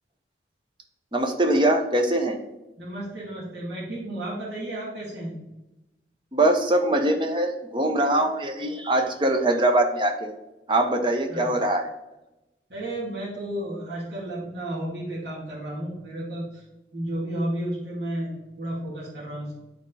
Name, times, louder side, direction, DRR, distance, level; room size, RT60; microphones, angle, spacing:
voice 1, 1.1-2.4 6.3-10.3 10.7-11.9, right 1 dB, 25° right, 5 dB, 0.7 m, -22 dB
voice 2, 2.8-5.3 11.3-11.5 12.7-16.6 16.9-19.6, right 1 dB, 65° right, -10 dB, 2.4 m, -32 dB
8.6 x 4.1 x 4.0 m, 0.98 s
head